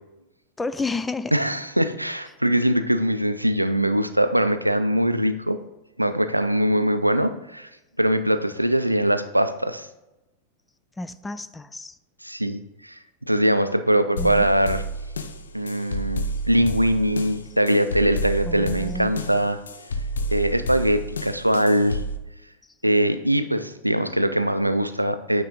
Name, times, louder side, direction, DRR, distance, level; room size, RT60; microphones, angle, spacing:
voice 1, 0.6-1.3 11.0-12.0 14.2-14.5 18.4-19.1, left 3 dB, 10° left, 13 dB, 0.3 m, -31 dB
voice 2, 1.3-5.6 6.0-7.7 8.0-9.9 12.2-12.9 13.3-14.8 15.5-19.6 20.3-22.0 22.8-25.4, right 1 dB, 90° right, 10 dB, 0.4 m, -22 dB
sound 1, 14.2-22.2, equal, 70° left, 0.5 m, -30 dB
8.8 x 3.6 x 4.0 m, 0.94 s
figure-of-eight pair, 90°, 0 cm